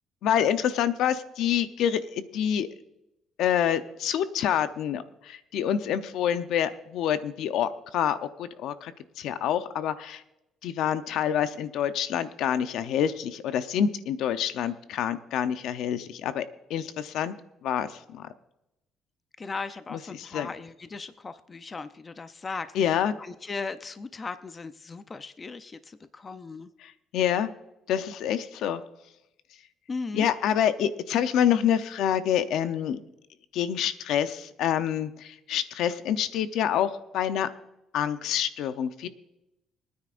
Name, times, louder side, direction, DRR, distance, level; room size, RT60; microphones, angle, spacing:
voice 1, 0.2-2.7 3.4-8.9 9.2-10.2 10.6-16.4 16.7-17.3 17.6-18.3 19.9-20.5 22.7-23.1 26.8-27.5 27.9-28.8 30.1-33.0 33.5-37.5 37.9-39.1, left 9 dB, 75° left, 11 dB, 0.7 m, -27 dB
voice 2, 19.4-26.7 29.9-30.3, left 4 dB, 25° left, 11 dB, 0.5 m, -37 dB
24.0 x 9.6 x 2.5 m, 0.90 s
cardioid pair, 140°, 0 cm